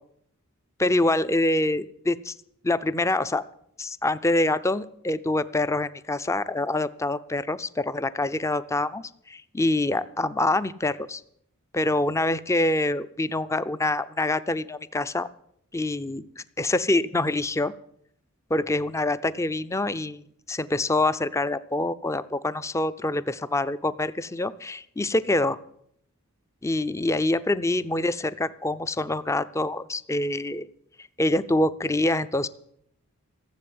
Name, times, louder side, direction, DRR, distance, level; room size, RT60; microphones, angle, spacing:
voice 1, 0.8-2.3 2.6-3.4 3.8-11.2 11.7-15.3 15.7-16.2 16.6-17.7 18.5-20.2 20.5-25.6 26.6-30.7 31.0-32.5, left 2 dB, 15° left, 15 dB, 0.5 m, -25 dB
15.5 x 7.6 x 9.5 m, 0.71 s
head